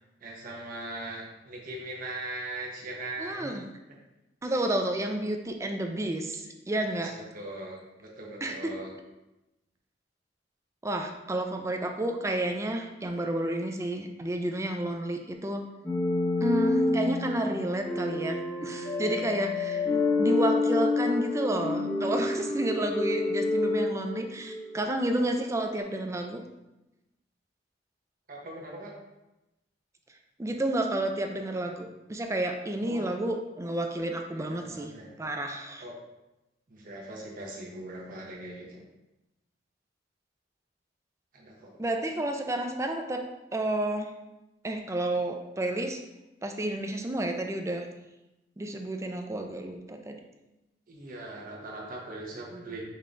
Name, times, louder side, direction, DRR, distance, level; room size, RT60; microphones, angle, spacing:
voice 1, 0.2-3.5 6.9-9.0 28.3-28.9 32.8-33.1 34.3-35.1 35.8-36.0 36.7-38.8 41.3-41.7 50.9-52.8, right 2 dB, 50° right, -2 dB, 1.0 m, -40 dB
voice 2, 3.2-3.6 4.4-7.1 8.4-8.8 10.8-15.6 16.4-19.9 20.2-26.4 30.4-34.9 35.2-35.8 41.8-43.2 43.5-44.1 44.6-46.0 46.4-47.8 48.6-50.1, right 1 dB, 15° right, 4 dB, 0.4 m, -31 dB
sound 1, 15.9-24.8, left 3 dB, 15° left, 0.8 m, -28 dB
5.5 x 3.3 x 2.5 m, 0.98 s
head